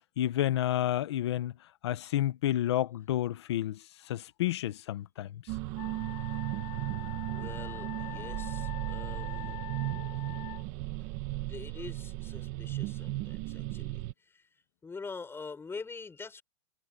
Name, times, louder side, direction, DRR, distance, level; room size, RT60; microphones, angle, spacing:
voice 1, 0.2-1.5 1.8-3.8 4.1-5.4, left 12 dB, 25° left, 0.5 m, -30 dB
sound 1, 5.5-14.1, right 18 dB, 20° right, 0.8 m, -36 dB
Wind instrument woodwind instrument, 5.8-10.6, left 18 dB, 40° left, 4.4 m, -44 dB
voice 2, 7.3-9.6 11.4-16.4, left 4 dB, 5° left, 5.6 m, -45 dB
hypercardioid pair, 170°, 36 cm